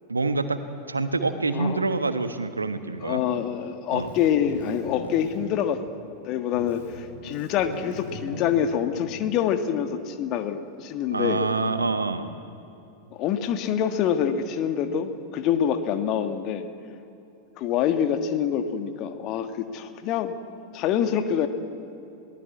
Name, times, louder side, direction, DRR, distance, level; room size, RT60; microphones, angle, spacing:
voice 1, 0.1-0.6 0.9-3.2 3.9-4.1 11.1-12.3, right 3 dB, 80° right, 10 dB, 1.2 m, -26 dB
voice 2, 1.5-1.8 3.0-5.8 6.2-11.4 13.1-16.6 17.6-20.4 20.7-21.5, left 9 dB, 40° left, 8 dB, 1.6 m, -26 dB
Keyboard (musical), 3.9-6.2 6.5-9.3, left 1 dB, 75° left, 5.4 m, -41 dB
22.0 x 17.5 x 8.4 m, 2.8 s
figure-of-eight pair, 90°, 0 cm